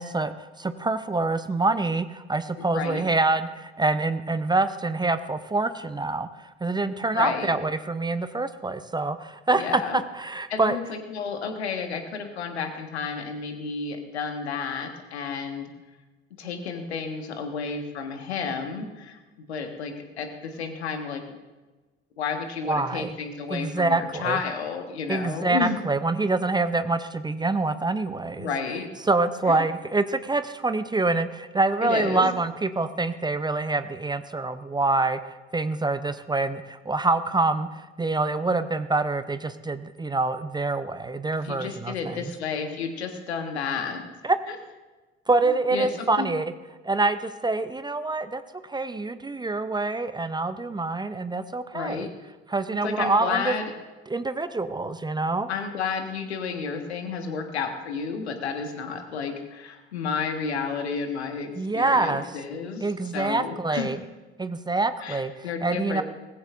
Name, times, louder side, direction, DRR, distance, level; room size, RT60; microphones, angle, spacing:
voice 1, 0.0-10.8 22.7-23.1 23.5-24.4 25.1-28.5 29.1-35.2 35.5-42.3 44.2-44.4 45.3-46.5 46.8-48.4 48.7-52.1 52.5-53.6 54.1-55.5 61.6-62.2 62.8-64.0 64.4-65.3 65.6-66.0, right 3 dB, 15° right, 12 dB, 0.7 m, -26 dB
voice 2, 2.6-3.1 7.1-7.6 9.5-10.0 10.5-15.7 16.4-19.2 19.5-21.4 22.2-25.8 28.4-28.9 29.5-29.6 31.8-32.3 41.4-44.0 44.5-44.6 45.4-46.3 51.7-52.1 52.8-53.7 55.5-62.9 63.1-63.9 65.0-66.0, left 5 dB, 75° left, 5 dB, 1.6 m, -31 dB
20.0 x 14.5 x 2.6 m, 1.2 s
figure-of-eight pair, 55°, 33 cm